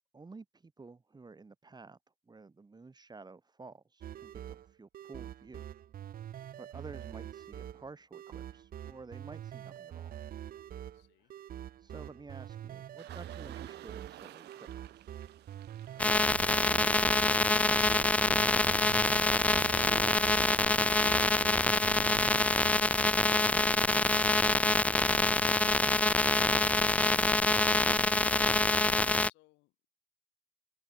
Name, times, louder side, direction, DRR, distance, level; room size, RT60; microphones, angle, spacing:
voice 1, 0.1-2.0 2.3-5.6 6.6-10.1 11.8-15.1, right 4 dB, 25° right, 6.7 m, -51 dB
sound 1, 4.0-22.7, right 11 dB, 55° right, 1.3 m, -45 dB
voice 2, 10.8-11.4 29.2-29.9, left 21 dB, 90° left, 6.5 m, -65 dB
Waves On Stony Beach, 13.0-26.2, right 15 dB, 75° right, 1.8 m, -54 dB
sound 2, 16.0-29.3, left 2 dB, 10° left, 0.3 m, -26 dB
cardioid pair, 95°, 18 cm